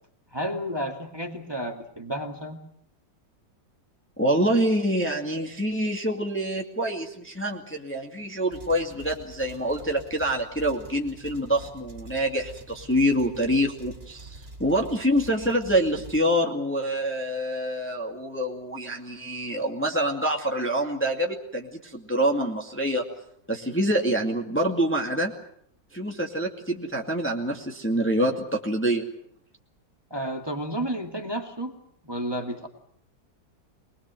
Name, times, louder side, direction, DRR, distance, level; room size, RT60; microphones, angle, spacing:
voice 1, 0.3-2.6 30.1-31.7 32.0-32.7, equal, 15° right, 3 dB, 2.3 m, -31 dB
voice 2, 4.2-23.0 23.5-25.3 25.9-29.0, equal, 5° left, 1 dB, 2.2 m, -26 dB
sound 1, 8.5-16.2, right 2 dB, 30° right, 3.8 m, -46 dB
25.0 x 21.0 x 7.7 m, 0.66 s
omnidirectional pair, 2.0 m